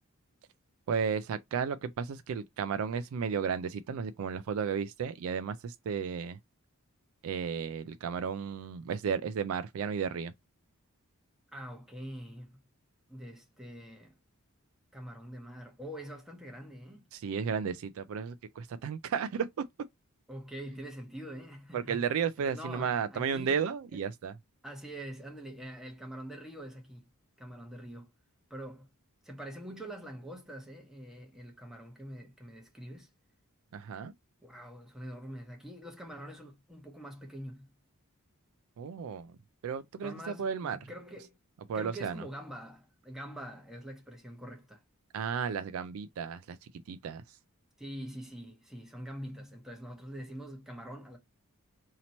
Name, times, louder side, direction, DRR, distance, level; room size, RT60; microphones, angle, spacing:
voice 1, 0.9-6.4 7.2-10.3 17.1-19.5 21.7-24.3 33.7-34.1 38.8-39.3 39.6-40.9 41.7-42.2 45.1-47.4, right 6 dB, 65° right, 0.3 m, -33 dB
voice 2, 11.5-12.6 13.1-14.1 14.9-17.1 20.3-22.1 22.5-23.6 23.9-24.0 24.6-27.1 27.4-28.1 28.5-28.9 29.2-33.1 34.4-37.7 40.0-41.4 41.7-44.8 47.8-51.2, equal, ahead, 0.9 m, -44 dB
2.9 x 2.8 x 4.1 m
head